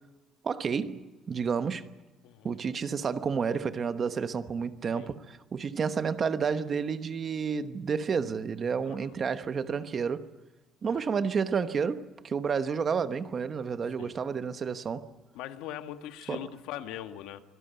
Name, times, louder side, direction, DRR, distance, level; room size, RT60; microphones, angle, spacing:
voice 1, 0.4-1.9 2.4-10.3 10.8-15.1 16.3-16.5, right 6 dB, 30° right, 1.0 m, -30 dB
voice 2, 2.2-2.6 4.9-5.1 8.8-9.1 10.8-11.1 14.0-14.2 15.3-17.4, left 12 dB, 90° left, 1.7 m, -41 dB
25.0 x 17.5 x 9.1 m
cardioid pair, 155°, 0 cm